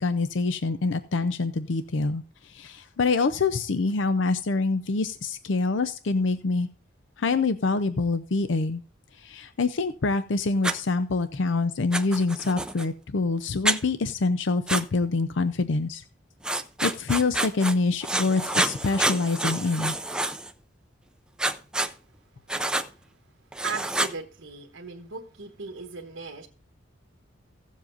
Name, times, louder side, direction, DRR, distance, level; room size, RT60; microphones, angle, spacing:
voice 1, 0.0-6.7 7.2-8.8 9.1-16.0 16.8-20.0, left 3 dB, 70° left, 12 dB, 0.6 m, -26 dB
Writing, 10.6-10.8 11.9-12.8 13.6-13.8 14.7-14.8 16.4-17.7 18.0-20.5 21.4-21.9 22.5-22.9 23.5-24.1, right 2 dB, 5° right, 0.5 m, -27 dB
voice 2, 23.6-26.5, right 4 dB, 85° right, 1 dB, 1.2 m, -37 dB
17.0 x 7.4 x 2.6 m, 0.37 s
head